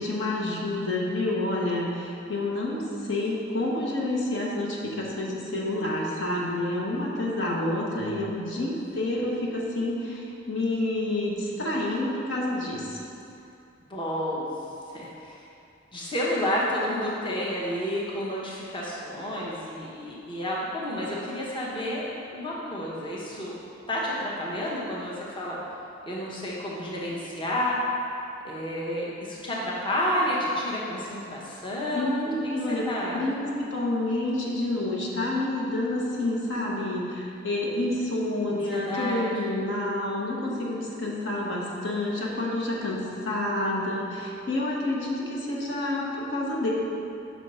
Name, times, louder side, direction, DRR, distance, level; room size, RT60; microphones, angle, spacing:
voice 1, 0.0-13.0 31.9-32.9 33.1-46.7, left 1 dB, 70° left, -4 dB, 1.2 m, -28 dB
voice 2, 8.2-8.6 13.9-14.5 14.9-15.4 15.9-22.0 22.3-23.5 23.9-25.6 26.0-27.8 28.4-32.1 32.7-33.2 38.5-39.2, left 1 dB, 25° left, -5 dB, 0.9 m, -30 dB
6.0 x 4.5 x 5.5 m, 2.6 s
head